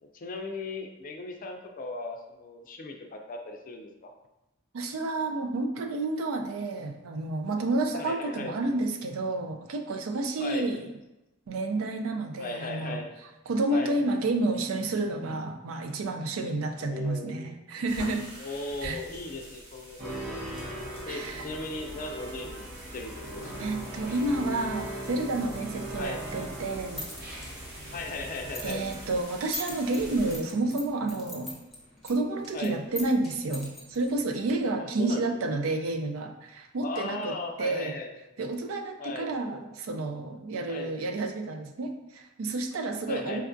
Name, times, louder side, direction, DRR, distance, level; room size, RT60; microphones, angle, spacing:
voice 1, 0.0-4.1 7.9-8.6 10.4-10.7 12.4-13.2 13.7-14.0 16.8-17.4 18.4-20.6 21.0-23.7 25.9-26.2 27.9-28.9 32.5-32.8 35.0-35.4 36.8-38.2 39.0-39.4 40.7-40.9 43.1-43.4, left 2 dB, 40° left, 3 dB, 0.4 m, -37 dB
voice 2, 4.7-10.9 11.5-13.0 13.5-18.3 18.8-19.0 21.1-21.5 23.6-27.1 28.6-31.6 32.0-38.0 38.4-43.4, right 2 dB, 70° right, 5 dB, 0.4 m, -30 dB
sound 1, 17.9-30.4, right 1 dB, 85° right, 1.0 m, -46 dB
sound 2, 20.0-29.2, right 1 dB, 50° right, 0.8 m, -39 dB
sound 3, 26.7-34.7, left 1 dB, ahead, 0.8 m, -44 dB
4.5 x 2.3 x 2.5 m, 0.95 s
head